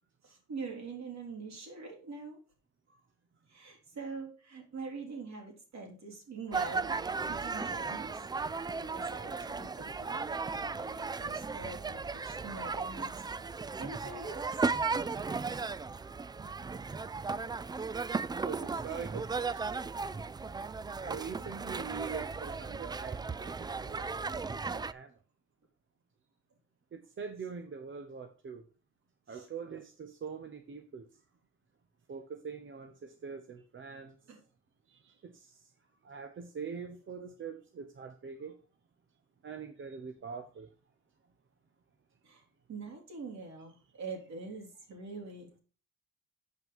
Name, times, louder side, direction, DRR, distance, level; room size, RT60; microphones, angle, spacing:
voice 1, 0.2-2.4 3.5-8.2 8.8-13.2 13.8-14.6 23.8-24.0 29.3-29.5 34.3-34.4 42.2-42.4 42.7-45.6, right 4 dB, 60° right, 3.8 m, -44 dB
sound 1, 6.5-24.9, right 4 dB, 15° right, 0.3 m, -36 dB
voice 2, 18.4-19.6 21.0-24.0 24.3-25.1 26.9-28.6 29.3-31.1 32.1-34.1 34.9-35.6 36.0-38.5 39.4-40.7, right 6 dB, 40° right, 0.9 m, -43 dB
7.7 x 5.8 x 5.4 m
cardioid pair, 90°, 30 cm